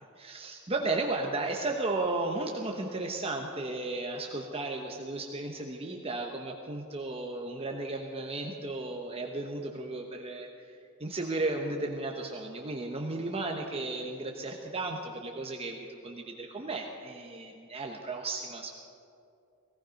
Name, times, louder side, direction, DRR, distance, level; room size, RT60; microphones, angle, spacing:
voice 1, 0.2-18.8, right 2 dB, 30° right, 1 dB, 1.0 m, -34 dB
17.5 x 15.5 x 5.2 m, 2.5 s
head